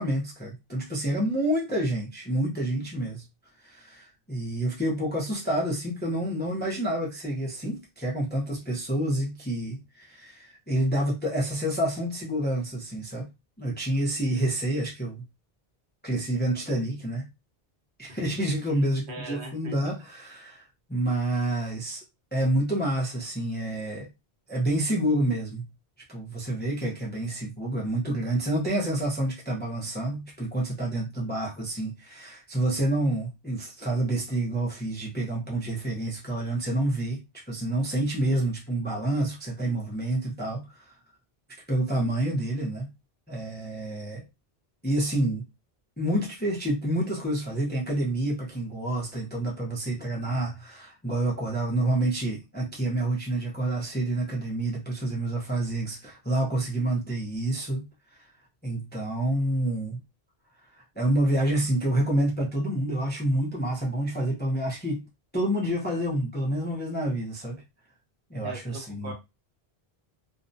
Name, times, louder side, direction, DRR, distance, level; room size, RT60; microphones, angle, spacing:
voice 1, 0.0-3.2 3.6-13.3 13.6-15.2 16.0-17.3 18.0-22.0 22.3-24.1 24.5-25.7 26.1-40.9 41.7-42.9 43.3-44.2 44.8-45.5 46.0-57.8 58.1-58.2 58.6-60.0 61.0-65.0 65.3-67.6 68.3-69.1, right 1 dB, 15° left, 0.5 m, -28 dB
voice 2, 19.1-19.7 68.4-69.1, right 1 dB, 60° right, 1.0 m, -40 dB
2.5 x 2.1 x 2.6 m
omnidirectional pair, 1.1 m